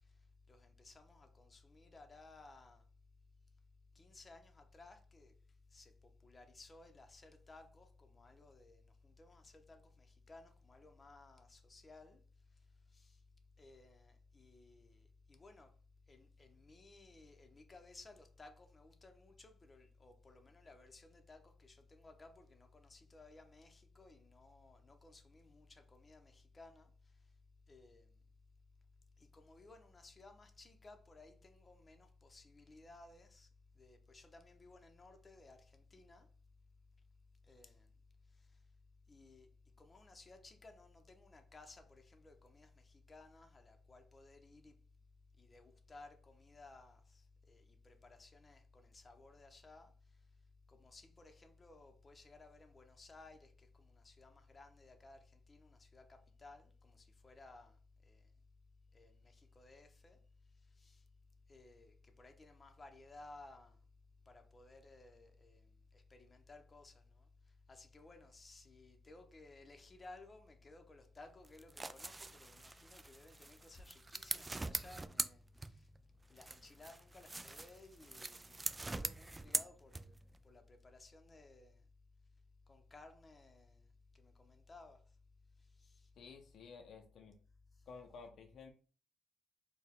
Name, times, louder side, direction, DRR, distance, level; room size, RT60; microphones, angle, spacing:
voice 1, 0.5-2.8 3.9-5.3 5.7-5.9 6.2-12.2 12.9-13.2 13.6-15.7 16.1-26.9 27.7-28.1 29.2-33.5 33.7-36.3 37.5-37.9 39.1-39.5 39.8-44.7 45.4-49.9 50.7-57.8 58.0-58.2 58.9-60.2 60.8-61.0 61.5-63.8 64.3-65.7 65.9-67.3 67.7-75.9 76.3-80.1 80.4-81.8 82.7-83.8 84.1-85.0 85.8-86.1, left 3 dB, 30° left, 0.8 m, -59 dB
sound 1, 71.4-76.0 76.4-80.4, right 2 dB, 20° right, 0.3 m, -43 dB
voice 2, 86.2-87.4 87.9-88.7, left 5 dB, 65° left, 0.6 m, -54 dB
4.4 x 2.3 x 3.6 m
cardioid pair, 90°, 0 cm